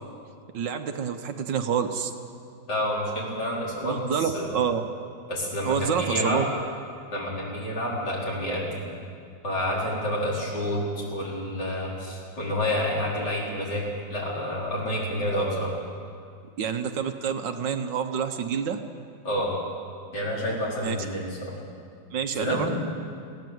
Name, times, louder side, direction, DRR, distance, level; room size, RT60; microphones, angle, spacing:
voice 1, 0.5-2.1 3.8-4.8 5.6-6.4 16.6-18.8 20.8-21.0 22.1-22.8, right 7 dB, 70° right, 7 dB, 1.6 m, -27 dB
voice 2, 2.7-4.5 5.3-6.4 7.1-8.7 9.4-13.8 14.1-15.7 19.3-19.5 20.1-21.5 22.3-22.8, left 1 dB, 60° left, -5 dB, 5.2 m, -29 dB
20.5 x 16.0 x 7.9 m, 2.3 s
omnidirectional pair, 2.1 m